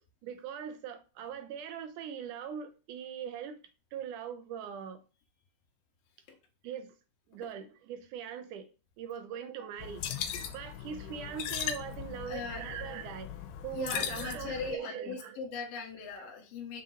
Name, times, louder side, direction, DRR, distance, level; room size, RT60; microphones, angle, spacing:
voice 1, 0.2-3.6 3.9-5.0 6.6-6.9 7.3-8.7 9.0-13.3 13.6-15.4, right 8 dB, 80° right, 2.1 m, -41 dB
sound 1, 9.8-14.8, left 9 dB, 85° left, 2.2 m, -38 dB
voice 2, 12.3-12.8 13.7-16.8, left 5 dB, 65° left, 1.8 m, -40 dB
6.6 x 4.1 x 3.8 m
omnidirectional pair, 3.7 m